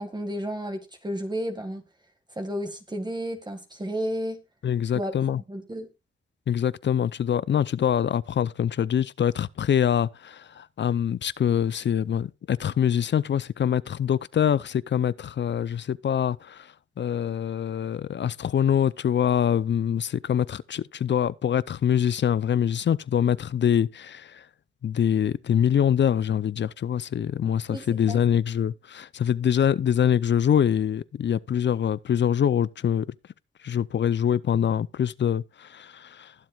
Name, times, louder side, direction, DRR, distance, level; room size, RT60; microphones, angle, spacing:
voice 1, 0.0-1.8 2.3-4.4 4.9-5.1 5.5-5.9 27.7-28.2, equal, 20° right, 1.8 m, -32 dB
voice 2, 4.6-5.4 6.5-16.7 17.0-24.4 24.8-33.1 33.6-36.3, left 9 dB, 60° left, 0.5 m, -24 dB
20.5 x 7.5 x 2.3 m
cardioid pair, 75°, 21 cm